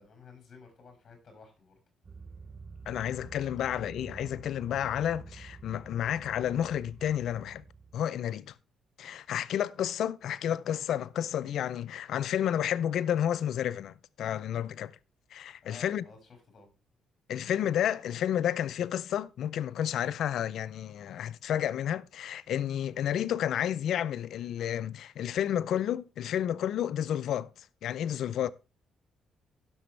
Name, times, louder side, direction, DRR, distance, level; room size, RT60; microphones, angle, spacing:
voice 1, 0.0-1.7 15.6-16.7, left 4 dB, 45° left, 6.2 m, -53 dB
sound 1, 2.0-7.9, right 4 dB, 30° right, 0.6 m, -48 dB
voice 2, 2.9-7.6 7.9-8.5 9.0-14.9 15.3-16.0 17.3-28.5, left 10 dB, 75° left, 0.4 m, -31 dB
15.5 x 6.9 x 3.2 m
cardioid pair, 90°, 0 cm